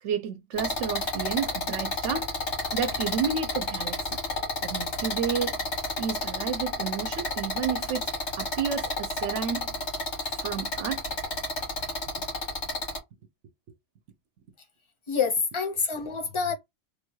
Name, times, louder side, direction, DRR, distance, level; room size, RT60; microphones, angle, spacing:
voice 1, 0.0-2.3 2.7-4.2 4.6-5.6 6.0-8.1 8.4-9.7 10.2-11.0, right 7 dB, 80° right, 0.9 m, -31 dB
sound 1, 0.6-13.0, left 2 dB, 75° left, 1.8 m, -31 dB
voice 2, 15.1-16.5, left 5 dB, 30° left, 0.7 m, -27 dB
3.3 x 2.3 x 3.0 m
omnidirectional pair, 1.2 m